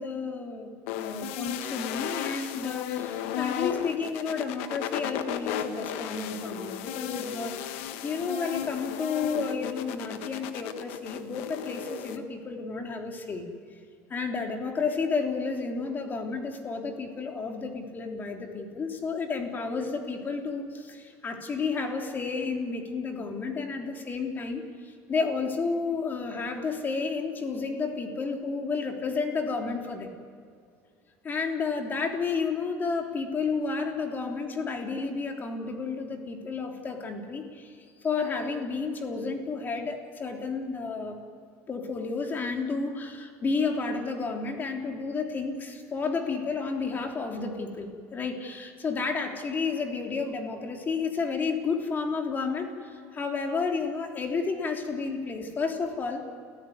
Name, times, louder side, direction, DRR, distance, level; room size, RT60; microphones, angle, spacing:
voice 1, 0.0-13.5 14.1-30.1 31.2-37.7 38.0-41.2 41.7-56.3, left 4 dB, 30° left, 3 dB, 3.3 m, -31 dB
sound 1, 0.9-12.2, left 10 dB, 85° left, 1.5 m, -35 dB
29.5 x 15.0 x 9.6 m, 2.3 s
supercardioid pair, 120°, 7 cm